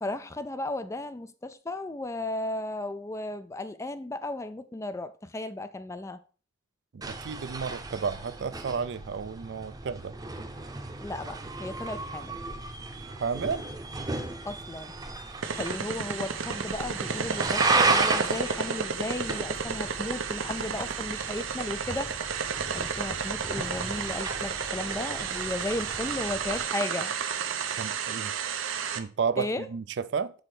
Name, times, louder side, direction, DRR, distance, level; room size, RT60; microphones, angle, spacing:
voice 1, 0.0-6.2 11.0-12.4 14.4-14.9 15.6-22.2 22.7-27.2 29.4-29.7, left 2 dB, 15° left, 0.3 m, -35 dB
voice 2, 6.9-10.2 13.2-13.6 27.8-28.3 28.9-30.3, right 5 dB, 60° right, 0.4 m, -32 dB
sound 1, 7.0-26.7, right 3 dB, 20° right, 0.7 m, -34 dB
sound 2, 15.4-29.0, right 6 dB, 85° right, 0.7 m, -32 dB
6.3 x 4.3 x 4.9 m
head